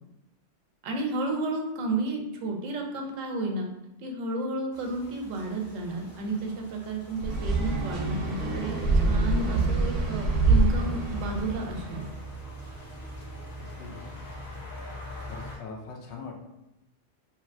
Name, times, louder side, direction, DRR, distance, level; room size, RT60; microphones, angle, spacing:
voice 1, 0.8-3.7 4.0-12.0, right 2 dB, 85° right, 2 dB, 1.0 m, -32 dB
sound 1, 4.7-15.6, right 1 dB, 45° left, 1.4 m, -43 dB
sound 2, 7.2-12.1, right 3 dB, 60° right, 0.7 m, -25 dB
voice 2, 13.6-14.2 15.3-16.3, left 4 dB, 65° left, 1 dB, 0.8 m, -42 dB
2.8 x 2.8 x 2.5 m, 0.87 s
omnidirectional pair, 1.3 m